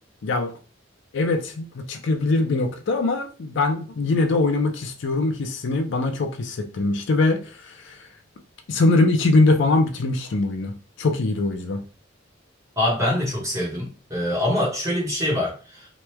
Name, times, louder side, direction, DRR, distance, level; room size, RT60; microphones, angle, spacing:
voice 1, 0.2-0.5 1.1-8.1 8.7-11.8, left 2 dB, 65° left, 0.5 m, -22 dB
voice 2, 12.8-15.9, left 1 dB, 15° right, 0.9 m, -24 dB
3.0 x 2.2 x 3.1 m
head